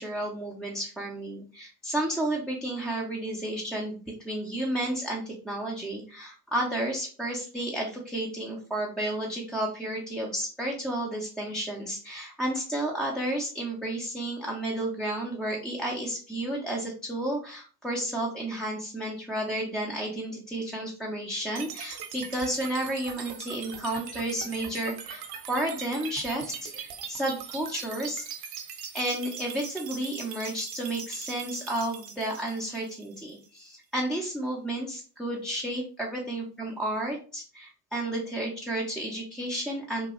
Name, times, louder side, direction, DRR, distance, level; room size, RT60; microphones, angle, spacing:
voice 1, 0.0-3.9 4.2-28.2 28.9-40.1, right 1 dB, ahead, -2 dB, 0.4 m, -32 dB
sound 1, 21.6-33.6, right 7 dB, 45° right, 0.8 m, -41 dB
3.0 x 2.2 x 2.9 m, 0.39 s
hypercardioid pair, 65°, 50 cm